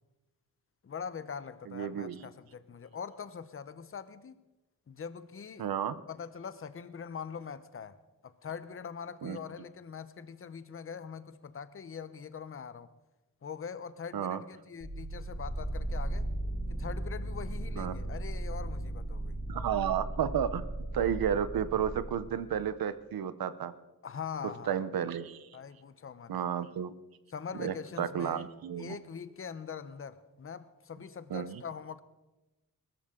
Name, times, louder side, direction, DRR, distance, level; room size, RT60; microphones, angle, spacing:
voice 1, 0.8-4.4 4.9-5.7 6.1-8.0 8.2-12.9 13.4-16.3 16.7-19.4 24.0-24.8 25.5-26.5 27.3-28.5 28.8-32.0, left 6 dB, 40° left, 0.8 m, -43 dB
voice 2, 1.7-2.3 5.6-6.0 9.2-9.4 14.1-14.4 17.7-17.9 19.5-20.6 20.9-23.7 24.7-25.5 26.3-26.9 27.6-29.0 31.3-31.6, right 9 dB, 85° right, 0.9 m, -32 dB
sound 1, 14.8-22.6, right 1 dB, 10° right, 3.5 m, -37 dB
21.5 x 13.5 x 3.8 m
wide cardioid pair, 130°, 35 cm